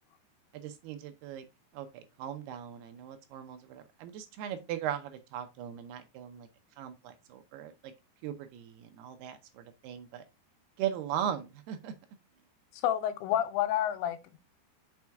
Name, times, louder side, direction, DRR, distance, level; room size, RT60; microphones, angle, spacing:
voice 1, 0.5-1.5 1.7-6.5 6.8-7.9 8.2-10.2 10.8-11.9, right 10 dB, 75° right, 2.5 m, -38 dB
voice 2, 12.7-14.4, left 11 dB, 90° left, 3.1 m, -29 dB
6.1 x 5.3 x 3.4 m
omnidirectional pair, 5.1 m